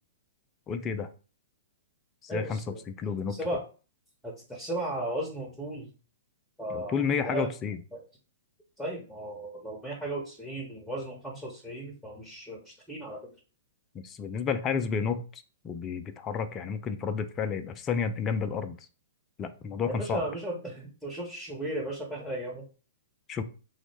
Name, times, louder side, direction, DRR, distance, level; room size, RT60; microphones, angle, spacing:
voice 1, 0.7-1.1 2.2-3.4 6.7-7.8 14.0-18.8 19.4-20.2 23.3-23.4, left 6 dB, 25° left, 9 dB, 0.4 m, -31 dB
voice 2, 2.3-2.8 3.3-3.6 4.2-5.9 6.6-7.5 7.9-8.0 8.8-13.3 19.9-22.7, right 1 dB, ahead, -1 dB, 0.9 m, -35 dB
3.5 x 2.1 x 3.3 m, 0.36 s
figure-of-eight pair, 115°, 0 cm